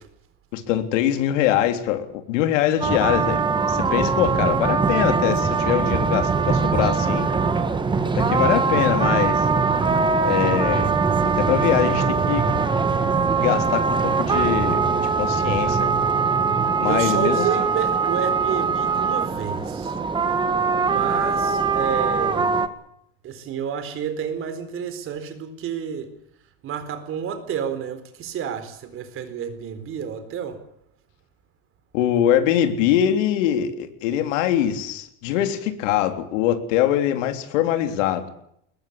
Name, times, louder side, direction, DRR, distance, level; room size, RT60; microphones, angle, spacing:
voice 1, 0.5-3.4 3.7-7.3 8.1-9.5 10.2-10.9 11.4-12.4 13.4-14.8 15.2-15.8 16.8-17.5 31.9-38.3, left 11 dB, 70° left, 3.6 m, -23 dB
sound 1, 2.8-22.7, right 5 dB, 10° right, 1.5 m, -21 dB
voice 2, 16.8-19.9 20.8-22.6 23.2-26.1 26.6-30.6, right 8 dB, 35° right, 4.2 m, -30 dB
21.5 x 21.0 x 8.6 m
supercardioid pair, 150°, 38 cm